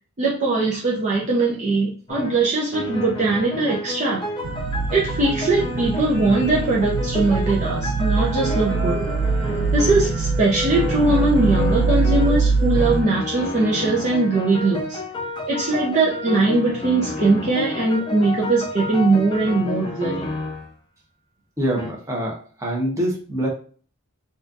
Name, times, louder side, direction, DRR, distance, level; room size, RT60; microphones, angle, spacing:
voice 1, 0.2-4.2 4.9-9.0 9.7-15.0 15.5-20.3, right 2 dB, 35° right, -4 dB, 0.6 m, -21 dB
sound 1, 2.1-2.4 2.7-10.3 10.7-12.4 12.8-20.7 21.8-21.9, left 1 dB, 20° left, 0.6 m, -30 dB
sound 2, 4.4-13.0, right 4 dB, 80° right, 0.3 m, -23 dB
sound 3, 8.1-13.5 14.0-14.1 14.3-14.4 15.1-15.2 15.6-15.9, left 1 dB, 5° left, 1.1 m, -34 dB
voice 2, 21.6-23.5, right 1 dB, 15° right, -1 dB, 0.9 m, -25 dB
4.2 x 2.5 x 2.4 m, 0.42 s
head